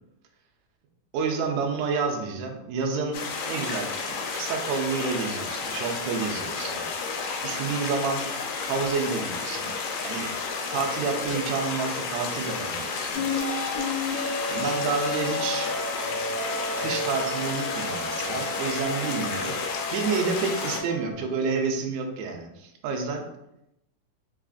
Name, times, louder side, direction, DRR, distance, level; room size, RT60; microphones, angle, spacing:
voice 1, 1.1-3.2 3.5-6.8 7.4-8.2 8.7-9.7 10.0-10.3 10.7-13.2 14.5-15.7 16.8-23.3, right 5 dB, 80° right, 3 dB, 1.6 m, -29 dB
sound 1, 3.1-20.8, left 5 dB, 85° left, 2.1 m, -32 dB
sound 2, 13.1-21.1, left 2 dB, 60° right, 0.9 m, -32 dB
5.5 x 2.4 x 2.4 m, 0.85 s
omnidirectional pair, 3.6 m